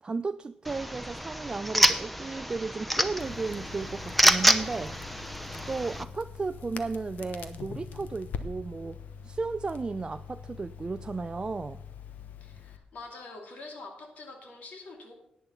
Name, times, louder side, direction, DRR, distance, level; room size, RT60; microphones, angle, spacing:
voice 1, 0.0-5.0 5.7-11.8, right 4 dB, 30° right, 0.3 m, -34 dB
sound 1, 0.6-6.0, equal, 5° left, 0.8 m, -27 dB
Crackle, 3.2-12.8, left 6 dB, 85° left, 1.0 m, -43 dB
voice 2, 12.4-15.1, left 3 dB, 70° left, 2.6 m, -45 dB
10.5 x 9.4 x 5.7 m
cardioid pair, 90°, 3 cm